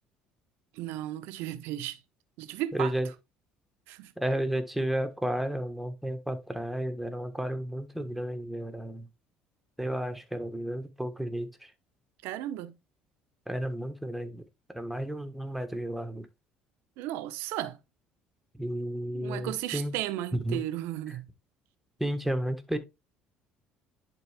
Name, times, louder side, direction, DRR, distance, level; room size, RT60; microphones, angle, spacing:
voice 1, 0.7-2.0 2.4-2.9 3.9-4.1 12.2-12.8 17.0-17.8 19.1-21.3, right 13 dB, 80° right, 0.9 m, -35 dB
voice 2, 2.7-3.1 4.2-9.1 9.8-11.7 13.5-14.4 14.7-16.3 18.5-19.9 20.3-20.6 22.0-22.8, right 1 dB, 5° right, 1.5 m, -32 dB
10.5 x 3.9 x 3.5 m
supercardioid pair, 85°, 4 cm